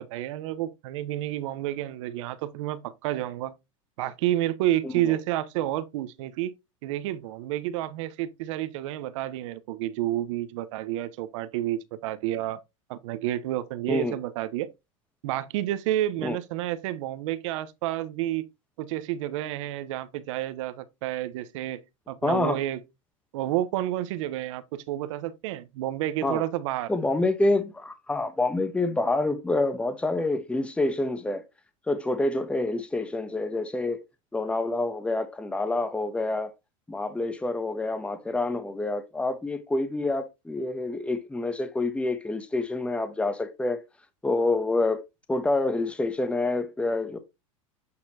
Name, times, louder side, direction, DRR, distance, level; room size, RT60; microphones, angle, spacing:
voice 1, 0.0-3.6 4.0-6.5 6.8-12.6 12.9-14.7 15.2-18.4 18.8-21.8 22.1-22.8 23.3-26.9, right 13 dB, 70° right, 1.0 m, -30 dB
voice 2, 4.8-5.2 13.9-14.1 16.2-16.4 22.2-22.6 26.2-26.4 26.9-31.4 31.9-34.0 34.3-36.5 36.9-43.8 44.2-45.0 45.3-47.2, left 2 dB, 5° left, 1.0 m, -27 dB
8.6 x 4.2 x 2.8 m
hypercardioid pair, 110°, 17 cm